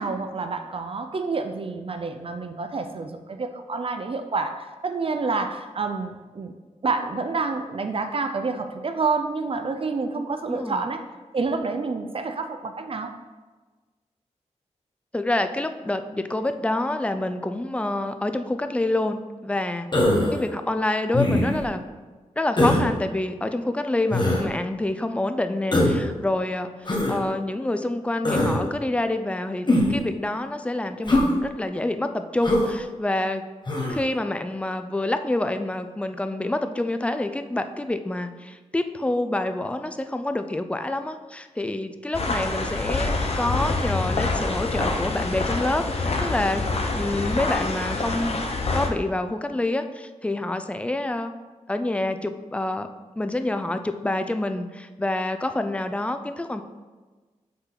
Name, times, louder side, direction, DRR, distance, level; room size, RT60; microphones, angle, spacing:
voice 1, 0.0-6.5 6.8-11.0 11.3-13.1, right 4 dB, 50° right, 7 dB, 0.5 m, -28 dB
voice 2, 10.5-10.8 15.1-19.9 20.3-21.8 22.4-33.4 33.9-46.6 46.9-48.4 48.7-51.3 51.7-52.9 53.2-56.6, left 2 dB, 10° left, 8 dB, 0.4 m, -27 dB
Human voice, 19.9-20.4 21.1-21.6 22.6-22.9 24.1-24.4 25.7-26.0 26.9-27.2 28.2-28.6 29.7-30.0 31.1-31.3 32.4-32.7 33.7-34.0, left 1 dB, 40° left, 1.3 m, -21 dB
sound 1, 42.1-48.9, left 3 dB, 55° left, 0.8 m, -26 dB
5.6 x 3.9 x 5.8 m, 1.3 s
cardioid pair, 65°, 12 cm